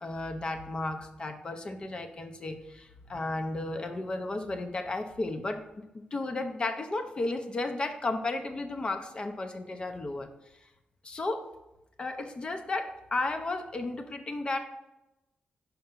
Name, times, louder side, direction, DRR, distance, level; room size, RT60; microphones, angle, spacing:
voice 1, 0.0-10.3 11.0-11.4 12.0-14.6, left 2 dB, 30° left, 6 dB, 0.6 m, -34 dB
5.7 x 5.3 x 3.7 m, 0.95 s
wide cardioid pair, 160°, 3 cm